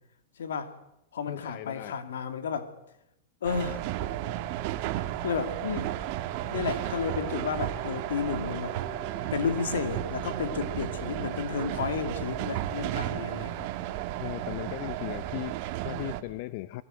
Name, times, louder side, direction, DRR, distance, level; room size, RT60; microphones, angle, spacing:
voice 1, 0.4-0.7 1.1-2.7 3.4-3.8 5.2-6.0 6.4-8.8 9.3-13.7, left 6 dB, 80° left, 2.7 m, -32 dB
voice 2, 1.3-2.0 14.2-16.8, left 17 dB, 55° left, 0.9 m, -37 dB
sound 1, 3.4-16.2, right 13 dB, 50° right, 2.0 m, -33 dB
sound 2, 6.6-11.6, right 2 dB, 25° left, 7.8 m, -46 dB
23.0 x 19.5 x 7.9 m
hypercardioid pair, 120°, 0 cm